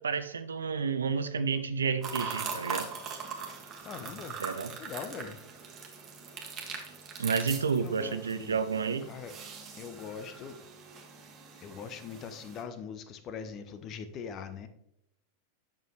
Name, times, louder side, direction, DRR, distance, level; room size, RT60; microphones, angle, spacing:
voice 1, 0.0-2.9 4.4-4.7 7.2-9.0, right 5 dB, 70° right, 11 dB, 0.6 m, -30 dB
sound 1, 2.0-12.6, right 5 dB, 30° right, 1.5 m, -41 dB
voice 2, 3.8-4.4 4.8-5.4 7.8-8.6 9.1-9.4 9.8-10.6 11.6-14.7, left 6 dB, 35° left, 10 dB, 0.8 m, -41 dB
8.8 x 6.2 x 3.3 m, 0.79 s
figure-of-eight pair, 90°, 0 cm